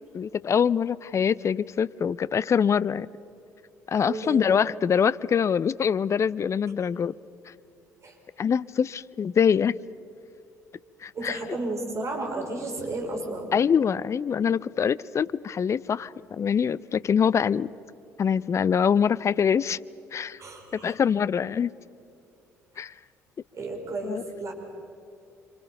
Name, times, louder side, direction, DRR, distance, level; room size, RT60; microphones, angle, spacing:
voice 1, 0.1-3.1 3.9-7.1 8.4-9.8 11.0-11.4 13.5-17.7 18.2-19.8 20.1-20.4 20.7-21.7 22.8-22.9 24.0-24.2, left 7 dB, 35° left, 0.6 m, -24 dB
voice 2, 3.9-4.5 8.0-8.2 11.1-13.5 20.4-21.0 23.5-24.5, right 2 dB, 35° right, 5.1 m, -33 dB
26.5 x 25.5 x 5.7 m
figure-of-eight pair, 50°, 9 cm